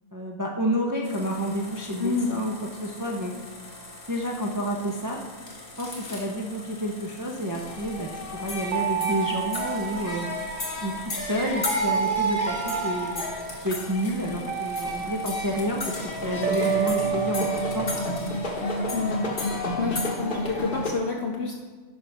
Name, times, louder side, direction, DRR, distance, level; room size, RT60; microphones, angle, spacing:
voice 1, 0.1-3.3 4.1-5.2 5.8-10.3 10.8-13.2 13.6-17.9, equal, 25° right, 0 dB, 0.5 m, -29 dB
sound 1, 1.0-19.1, left 2 dB, 80° left, 1.9 m, -45 dB
voice 2, 2.0-2.3 18.9-19.2 19.8-21.5, left 4 dB, 60° left, 0 dB, 0.9 m, -28 dB
sound 2, 7.6-20.9, equal, 45° left, 1.1 m, -31 dB
sound 3, 8.7-11.1 12.5-13.5 14.5-15.8 16.4-18.8, right 10 dB, 85° right, 1.1 m, -31 dB
10.5 x 5.2 x 3.4 m, 1.4 s
omnidirectional pair, 1.4 m